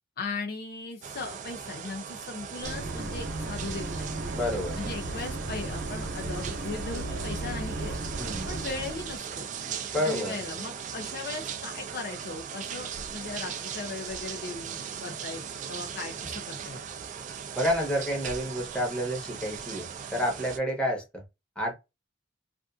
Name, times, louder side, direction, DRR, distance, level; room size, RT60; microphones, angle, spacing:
voice 1, 0.2-4.1 4.8-8.0 8.5-9.5 10.0-16.9, left 3 dB, 50° left, 0.5 m, -38 dB
sound 1, 1.0-20.6, right 7 dB, 40° right, 0.3 m, -38 dB
sound 2, 2.6-9.2, right 2 dB, 80° right, 0.9 m, -35 dB
voice 2, 4.3-4.8 8.2-8.6 9.9-10.4 17.6-21.2 21.6-21.7, equal, 5° left, 0.9 m, -29 dB
2.5 x 2.4 x 2.3 m
head